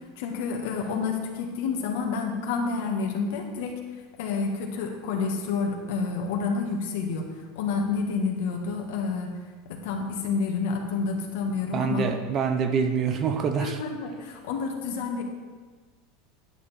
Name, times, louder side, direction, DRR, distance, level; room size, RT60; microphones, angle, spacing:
voice 1, 0.2-3.8 4.2-7.3 7.5-9.3 9.6-12.1 13.6-15.2, left 4 dB, 75° left, 2 dB, 1.5 m, -29 dB
voice 2, 11.7-13.8, right 6 dB, 30° right, 7 dB, 0.7 m, -25 dB
10.0 x 6.9 x 4.2 m, 1.4 s
supercardioid pair, 150°, 0 cm